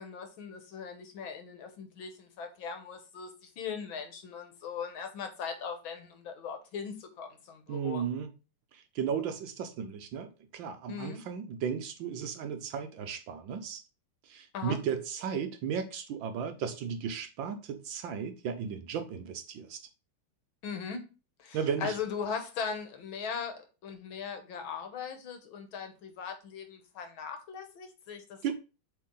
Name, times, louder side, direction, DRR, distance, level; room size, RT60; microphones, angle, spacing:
voice 1, 0.0-8.0 10.9-11.2 14.5-14.8 20.6-21.0 21.4-28.5, left 6 dB, 65° left, 1.8 m, -39 dB
voice 2, 7.7-8.3 8.7-13.8 14.2-19.8 21.5-22.0 28.4-28.5, right 7 dB, 70° right, 1.3 m, -35 dB
7.5 x 3.4 x 3.8 m
omnidirectional pair, 2.4 m